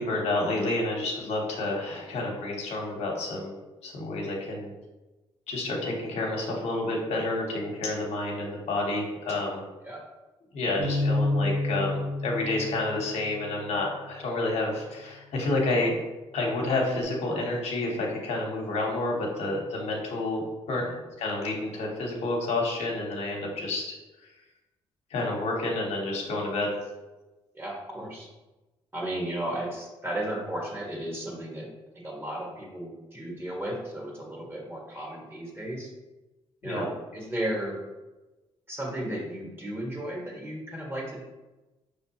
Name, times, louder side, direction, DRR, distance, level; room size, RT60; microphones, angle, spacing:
voice 1, 0.0-3.5 3.8-4.7 5.5-9.6 10.5-15.9 16.3-20.4 20.7-20.8 21.2-23.9 25.1-26.7 36.6-36.8, left 2 dB, 75° left, -1 dB, 1.0 m, -29 dB
Bass guitar, 10.8-15.2 15.9-17.0, left 2 dB, 65° right, 1.1 m, -32 dB
voice 2, 27.5-28.3 28.9-31.7 32.0-35.9 36.6-37.8 38.7-41.2, right 1 dB, 20° right, -2 dB, 1.5 m, -34 dB
5.1 x 3.3 x 2.9 m, 1.1 s
supercardioid pair, 70°, 11 cm